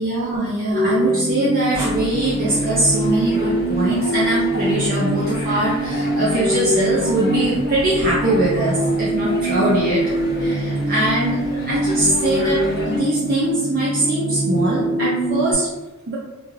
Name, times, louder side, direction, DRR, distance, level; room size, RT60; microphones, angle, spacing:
voice 1, 0.0-15.7 16.1-16.2, right 1 dB, 45° right, -6 dB, 0.5 m, -22 dB
sound 1, 0.7-15.5, right 1 dB, 90° left, 0.6 m, -23 dB
sound 2, 1.7-13.0, equal, 45° left, 0.8 m, -33 dB
2.3 x 2.3 x 3.1 m, 1.1 s
head